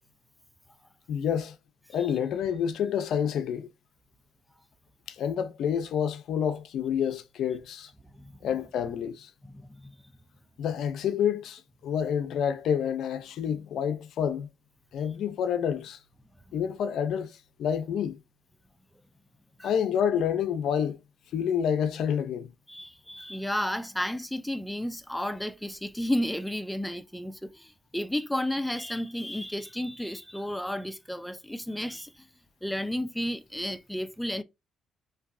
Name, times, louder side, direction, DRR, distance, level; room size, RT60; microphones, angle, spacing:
voice 1, 1.1-1.6 1.9-3.7 5.2-7.9 8.4-9.3 10.6-14.5 14.9-16.0 16.5-17.3 17.6-18.2 19.6-21.0 21.3-22.5, left 8 dB, 75° left, 0.4 m, -28 dB
voice 2, 9.4-10.0 19.6-19.7 22.7-32.3 32.6-34.4, left 1 dB, 5° left, 0.4 m, -32 dB
3.1 x 2.6 x 2.4 m
cardioid pair, 90°, 0 cm